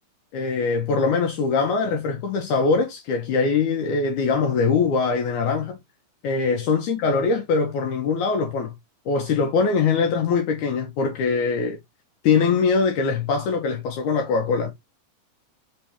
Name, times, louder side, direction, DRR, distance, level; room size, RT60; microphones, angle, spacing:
voice 1, 0.3-5.8 6.2-8.7 9.1-11.8 12.2-14.7, left 5 dB, 75° left, 2.1 m, -22 dB
5.3 x 3.4 x 2.9 m
omnidirectional pair, 3.8 m